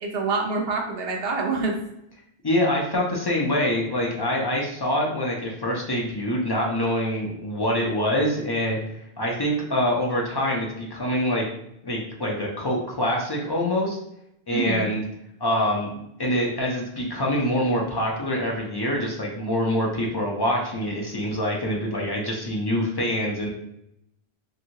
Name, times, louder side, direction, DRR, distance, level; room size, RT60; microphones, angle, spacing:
voice 1, 0.0-1.8 14.5-14.9, right 3 dB, 70° right, 0 dB, 0.9 m, -26 dB
voice 2, 2.4-8.8 9.2-11.4 11.8-14.0 14.5-15.0 15.4-23.5, equal, 35° left, -2 dB, 0.4 m, -25 dB
2.9 x 2.6 x 2.8 m, 0.77 s
omnidirectional pair, 1.1 m